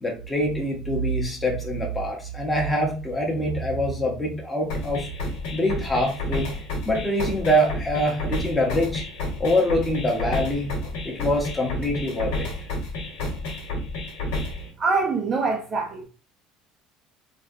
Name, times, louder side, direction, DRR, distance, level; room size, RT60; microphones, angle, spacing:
voice 1, 0.0-5.1 5.5-6.5 6.9-9.0 9.4-10.7 11.0-12.5, equal, 10° left, 0.7 m, -24 dB
sound 1, 4.7-14.7, left 2 dB, 90° left, 1.1 m, -31 dB
voice 2, 14.8-16.1, right 4 dB, 25° right, 0.3 m, -24 dB
3.3 x 2.2 x 2.5 m
cardioid pair, 175°, 0 cm